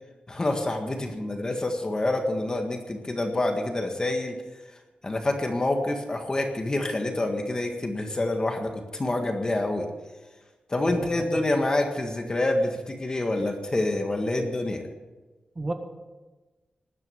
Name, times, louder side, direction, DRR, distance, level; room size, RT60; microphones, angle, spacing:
voice 1, 0.3-4.3 5.0-9.9 10.7-14.8, left 2 dB, 25° left, 4 dB, 1.7 m, -27 dB
voice 2, 10.9-11.4 14.3-14.4 15.6-15.7, right 2 dB, 30° right, 4 dB, 1.8 m, -35 dB
20.0 x 9.7 x 6.8 m, 1.2 s
wide cardioid pair, 140°, 3 cm